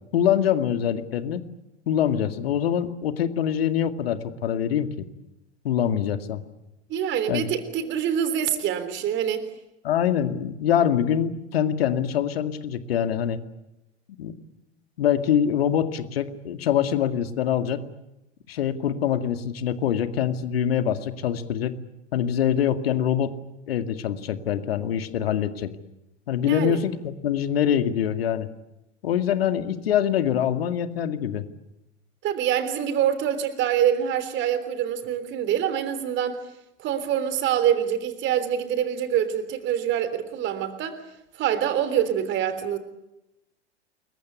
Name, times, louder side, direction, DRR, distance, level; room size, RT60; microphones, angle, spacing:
voice 1, 0.1-1.4 1.9-5.1 5.6-6.4 7.3-7.5 9.8-13.4 14.2-14.3 15.0-17.8 18.5-21.7 22.1-23.3 23.7-25.7 26.3-28.5 29.0-31.5, left 9 dB, 55° left, 9 dB, 2.2 m, -24 dB
voice 2, 6.9-9.4 26.4-26.8 32.2-36.4 36.8-41.0 41.3-42.8, right 9 dB, 30° right, 13 dB, 3.4 m, -25 dB
29.0 x 23.0 x 8.2 m, 0.91 s
figure-of-eight pair, 90°, 35 cm